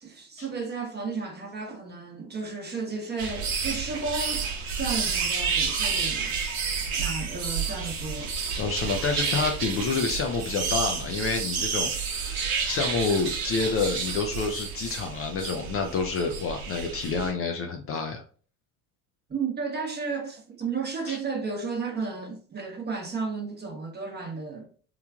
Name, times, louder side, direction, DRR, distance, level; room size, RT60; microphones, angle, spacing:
voice 1, 0.0-4.5 4.8-6.4 6.9-8.3 19.3-24.7, right 4 dB, 25° right, 0.9 m, -33 dB
sound 1, 3.2-17.3, right 5 dB, 75° right, 0.9 m, -30 dB
voice 2, 8.6-18.2 21.0-21.2, left 4 dB, 35° left, 0.4 m, -28 dB
3.1 x 2.2 x 2.3 m
hypercardioid pair, 70°, 42 cm